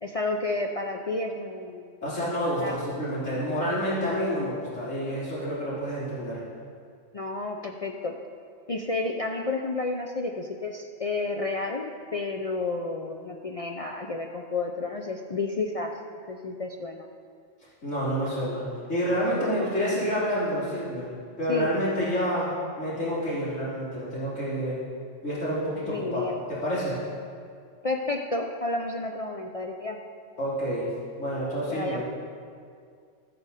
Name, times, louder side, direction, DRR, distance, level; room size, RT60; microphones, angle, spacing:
voice 1, 0.0-1.9 2.6-2.8 7.1-8.2 8.7-16.0 16.3-17.1 19.3-19.7 21.5-21.7 25.9-26.4 27.8-30.0 31.7-32.0, left 3 dB, 40° left, 2 dB, 0.5 m, -31 dB
voice 2, 2.0-6.4 17.8-21.1 21.4-24.8 25.2-27.0 30.4-30.9 31.2-32.0, equal, 80° left, -10 dB, 3.9 m, -28 dB
14.5 x 8.6 x 4.1 m, 2.2 s
omnidirectional pair, 1.3 m